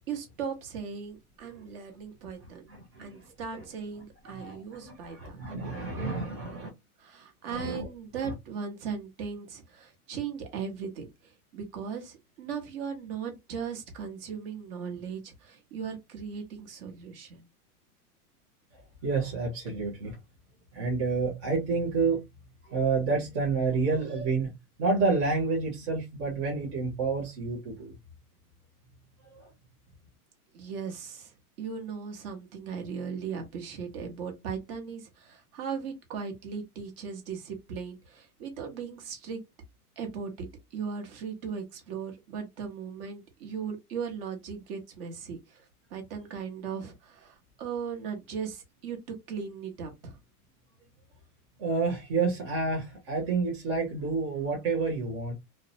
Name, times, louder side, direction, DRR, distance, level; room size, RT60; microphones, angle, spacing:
voice 1, 0.1-2.7 3.0-5.4 7.0-11.1 11.5-17.4 30.5-31.3 31.6-39.4 40.0-40.5 40.7-45.7 45.9-50.2, right 6 dB, 40° right, 0.8 m, -38 dB
voice 2, 2.7-3.7 3.9-6.7 7.5-7.9 8.2-8.3 19.0-20.2 20.7-22.2 22.7-24.5 24.8-28.0 29.3-29.5 51.6-55.3, right 4 dB, 25° right, 0.3 m, -29 dB
2.5 x 2.0 x 2.5 m
supercardioid pair, 145°, 46 cm